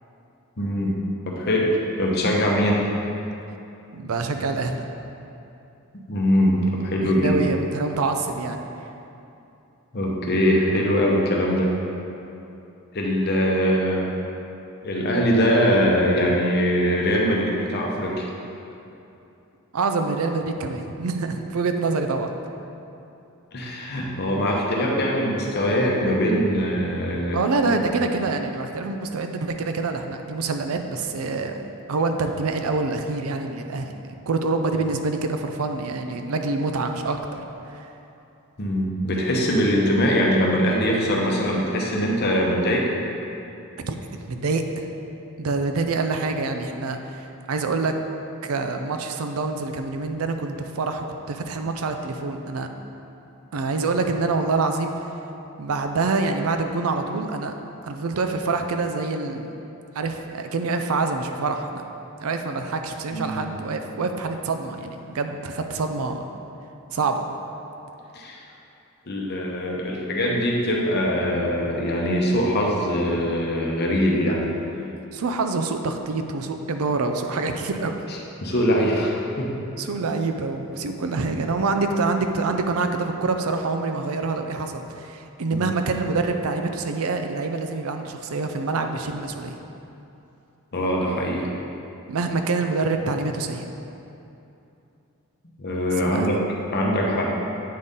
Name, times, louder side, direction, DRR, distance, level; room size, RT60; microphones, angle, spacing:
voice 1, 0.6-1.0 1.3-2.8 6.1-7.4 9.9-11.7 12.9-14.1 14.8-18.3 23.5-27.4 38.6-42.9 63.1-63.5 68.1-68.4 69.1-74.5 78.4-79.5 85.5-85.7 90.7-91.5 95.6-96.3 96.7-97.3, equal, 45° left, -2 dB, 0.8 m, -22 dB
voice 2, 3.9-4.8 7.0-8.6 19.7-22.3 27.3-31.6 31.9-33.9 34.3-37.4 37.7-37.9 43.8-44.0 44.3-44.9 45.4-48.0 48.4-52.7 53.5-55.1 55.6-57.5 57.8-59.5 59.9-61.8 62.2-66.2 66.9-67.3 75.1-78.0 79.8-89.5 92.1-93.7 96.0-96.5, right 3 dB, 75° right, 6 dB, 0.5 m, -26 dB
8.5 x 4.0 x 3.7 m, 2.8 s
head